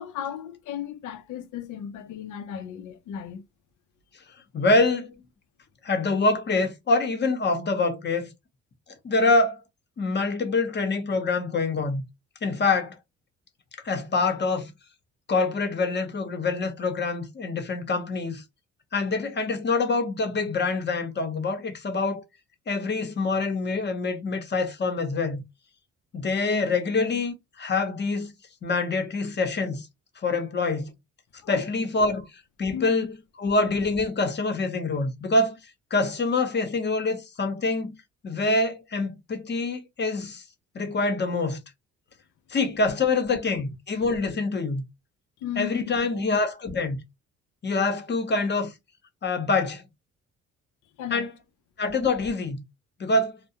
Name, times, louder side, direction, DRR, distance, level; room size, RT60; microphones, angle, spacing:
voice 1, 0.0-3.4 4.4-4.5 31.4-31.7 32.7-32.9 43.2-43.3 45.4-46.2 51.0-51.3, left 10 dB, 80° left, 0.5 m, -35 dB
voice 2, 4.5-5.1 5.8-8.3 9.0-9.6 10.0-12.0 12.4-12.9 13.8-14.7 15.3-18.4 18.9-22.2 22.7-25.4 26.1-28.3 28.6-29.9 30.2-30.9 31.5-32.3 32.6-33.1 33.4-35.6 35.9-37.9 38.2-40.4 40.7-41.6 42.5-44.8 45.6-47.0 47.6-48.7 49.2-49.8 51.1-51.3 51.8-52.6 53.0-53.4, left 3 dB, 35° left, 0.7 m, -25 dB
2.3 x 2.1 x 2.7 m
cardioid pair, 90°, 30 cm